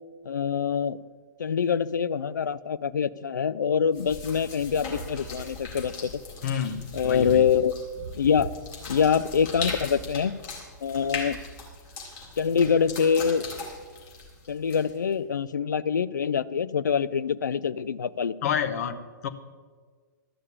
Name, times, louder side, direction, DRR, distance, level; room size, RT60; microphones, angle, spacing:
voice 1, 0.2-1.0 1.4-6.1 6.9-7.7 8.1-8.5 8.9-10.3 10.8-11.4 12.4-13.4 14.5-18.4, left 7 dB, 70° left, 16 dB, 0.5 m, -25 dB
sound 1, 3.9-15.1, left 2 dB, 35° left, 3.8 m, -39 dB
voice 2, 6.4-7.5 18.4-19.3, left 8 dB, 55° left, 10 dB, 1.1 m, -29 dB
13.0 x 6.5 x 8.5 m, 1.5 s
figure-of-eight pair, 110°, 10 cm